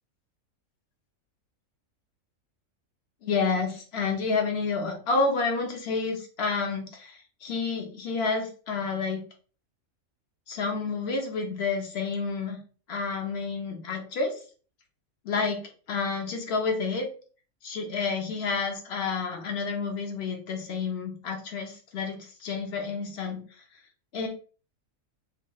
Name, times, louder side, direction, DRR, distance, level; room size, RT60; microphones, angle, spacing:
voice 1, 3.2-9.2 10.5-12.6 12.9-14.3 15.2-15.6 15.9-17.1 17.6-23.4 24.1-24.3, left 4 dB, 55° left, 3 dB, 0.8 m, -29 dB
3.0 x 2.6 x 2.2 m, 0.39 s
omnidirectional pair, 1.5 m